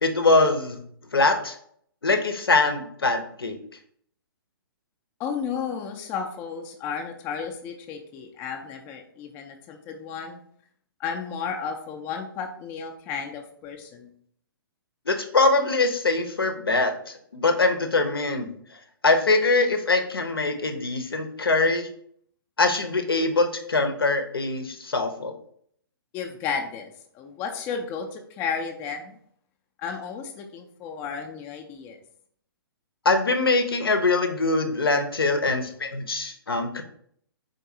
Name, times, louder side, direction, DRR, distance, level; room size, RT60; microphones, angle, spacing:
voice 1, 0.0-0.8 1.1-1.6 2.0-3.6 15.1-18.5 19.0-21.9 22.6-25.4 33.0-36.8, left 3 dB, 70° left, 7 dB, 0.6 m, -23 dB
voice 2, 5.2-10.4 11.0-14.1 26.1-26.9 27.1-29.2 29.8-32.0, left 6 dB, 15° left, 3 dB, 0.3 m, -33 dB
3.9 x 3.8 x 2.6 m, 0.64 s
figure-of-eight pair, 120°, 13 cm